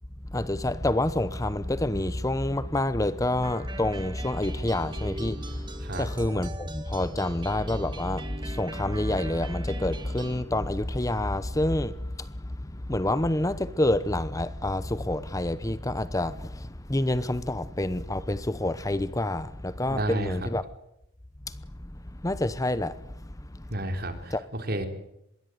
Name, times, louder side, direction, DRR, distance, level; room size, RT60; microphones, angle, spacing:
voice 1, 0.3-20.6 21.5-23.7 24.3-24.4, left 1 dB, 20° left, 0.9 m, -28 dB
sound 1, 3.4-10.4, right 2 dB, 25° right, 2.1 m, -42 dB
voice 2, 19.9-20.4 23.7-24.9, right 1 dB, 55° right, 4.1 m, -31 dB
24.5 x 22.0 x 9.4 m
head